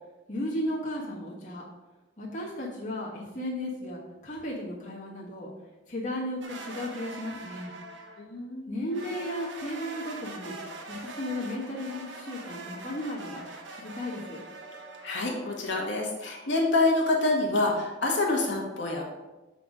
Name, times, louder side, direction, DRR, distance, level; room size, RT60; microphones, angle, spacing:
voice 1, 0.3-1.6 2.2-5.5 5.9-7.7 8.7-10.6 10.9-13.4 13.7-14.4, left 1 dB, 40° left, -4 dB, 1.3 m, -35 dB
sound 1, 6.4-8.3 8.9-15.6, right 2 dB, 65° right, 0.9 m, -43 dB
voice 2, 8.2-8.7 15.0-19.1, left 2 dB, 60° left, -2 dB, 1.3 m, -27 dB
6.7 x 4.1 x 4.8 m, 1.1 s
head